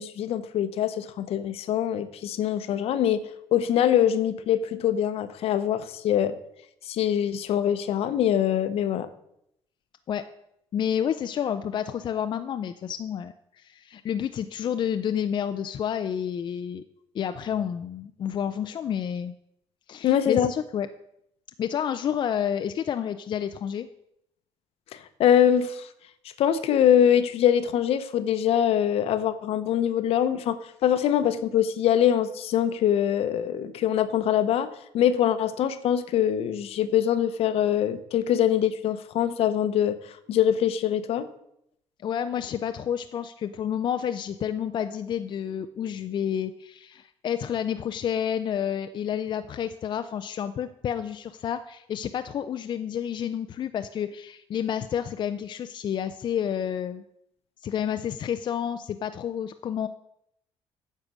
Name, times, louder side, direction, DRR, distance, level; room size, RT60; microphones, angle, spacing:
voice 1, 0.0-3.2 3.5-6.4 6.8-9.1 20.0-20.5 24.9-25.9 26.4-40.0 40.3-41.3, left 10 dB, 65° left, 12 dB, 0.9 m, -23 dB
voice 2, 10.7-16.8 17.1-19.3 19.9-20.9 21.6-23.9 42.0-57.0 57.6-59.9, left 9 dB, 45° left, 9 dB, 0.5 m, -30 dB
9.7 x 6.6 x 6.1 m, 0.76 s
cardioid pair, 115°, 11 cm